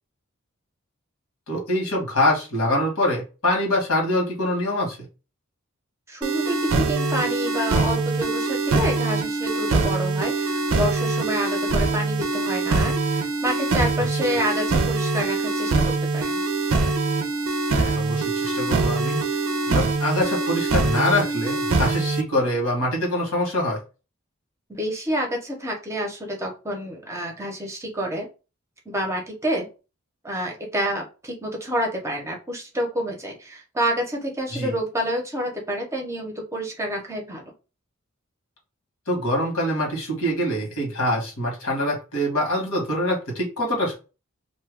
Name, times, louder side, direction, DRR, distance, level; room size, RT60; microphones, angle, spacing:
voice 1, 1.5-5.0 14.1-14.2 17.7-19.2 19.7-23.8 34.5-34.7 39.1-44.0, left 1 dB, 85° left, -1 dB, 1.4 m, -24 dB
voice 2, 6.1-15.8 16.1-16.4 24.7-28.3 28.9-29.7 30.2-37.5, equal, 15° right, 1 dB, 0.7 m, -28 dB
sound 1, 6.2-22.2, right 3 dB, 70° right, 0.4 m, -23 dB
2.7 x 2.2 x 3.4 m, 0.32 s
head